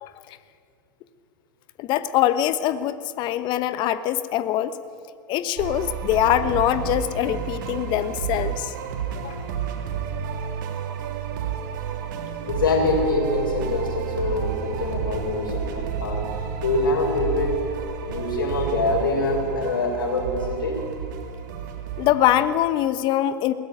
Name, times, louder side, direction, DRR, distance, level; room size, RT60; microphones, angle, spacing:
voice 1, 0.0-0.4 1.8-4.8 5.3-8.7 9.2-9.3 22.0-23.5, left 12 dB, 40° left, 13 dB, 1.1 m, -23 dB
sound 1, 5.6-22.5, right 7 dB, 60° right, 3.0 m, -31 dB
voice 2, 12.5-17.6 18.1-20.8, left 2 dB, 70° left, 1 dB, 6.6 m, -24 dB
21.5 x 17.5 x 9.2 m, 2.3 s
figure-of-eight pair, 90°, 12 cm